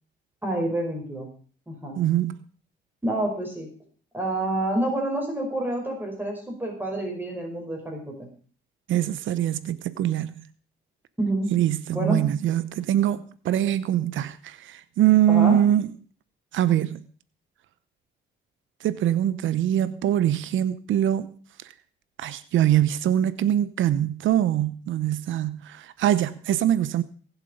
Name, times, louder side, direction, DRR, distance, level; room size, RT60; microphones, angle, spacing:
voice 1, 0.4-1.3 1.7-2.0 3.0-3.7 4.1-8.3 11.2-11.5 11.9-12.2 15.3-15.6, right 1 dB, 10° right, 5.5 m, -28 dB
voice 2, 2.0-2.4 8.9-10.5 11.5-15.9 16.5-17.0 18.8-21.3 22.2-27.0, right 11 dB, 75° right, 0.9 m, -23 dB
20.0 x 7.5 x 5.2 m
cardioid pair, 90°, 20 cm